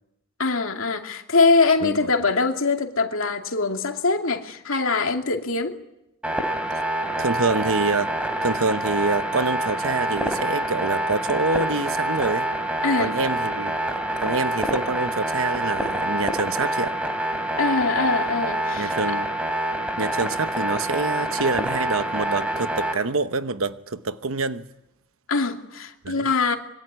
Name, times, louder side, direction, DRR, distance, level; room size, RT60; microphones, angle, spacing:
voice 1, 0.4-5.8 12.8-13.1 17.6-18.9 25.3-26.6, left 3 dB, 75° left, 2.6 m, -23 dB
sound 1, 6.2-22.9, right 1 dB, 5° right, 3.1 m, -26 dB
voice 2, 7.2-12.5 13.0-13.8 14.2-16.9 18.8-19.3 20.0-24.7 26.0-26.3, right 3 dB, 85° right, 1.0 m, -26 dB
26.0 x 23.0 x 9.7 m
head